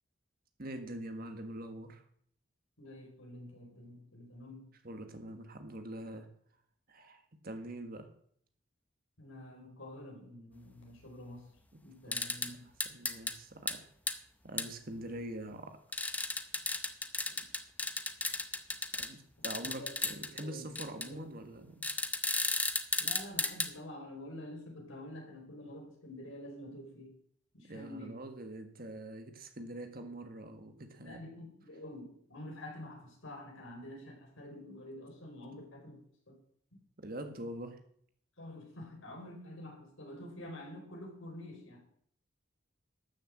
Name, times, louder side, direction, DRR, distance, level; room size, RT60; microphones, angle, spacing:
voice 1, 0.6-2.0 4.8-6.3 6.9-8.1 12.0-12.4 12.8-13.8 14.4-15.8 18.9-21.8 27.6-31.2 37.0-37.8, right 1 dB, 45° right, 6 dB, 1.6 m, -44 dB
voice 2, 2.8-4.7 9.2-11.5 11.8-12.7 17.3-17.5 19.4-20.0 20.3-21.2 23.0-27.1 27.5-28.2 31.0-36.4 38.4-41.8, left 1 dB, 70° left, 1 dB, 4.4 m, -48 dB
sound 1, 12.1-12.5 12.8-13.3 13.7-13.8 14.1-14.2 14.6-14.7 15.9-19.1 19.4-20.4 20.8-21.1 21.8-23.7, left 3 dB, 10° left, 0.7 m, -34 dB
12.5 x 6.8 x 7.6 m, 0.65 s
head